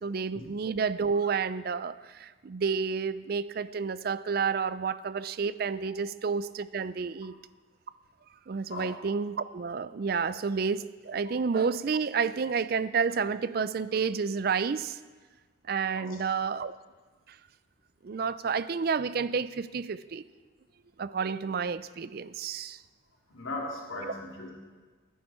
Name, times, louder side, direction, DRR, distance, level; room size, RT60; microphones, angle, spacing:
voice 1, 0.0-7.3 8.5-15.0 15.7-16.7 18.0-20.2 21.0-22.8 24.0-24.1, right 5 dB, 50° right, 15 dB, 0.4 m, -30 dB
voice 2, 23.3-24.5, left 2 dB, 85° left, -2 dB, 3.2 m, -38 dB
17.0 x 10.0 x 4.4 m, 1.4 s
head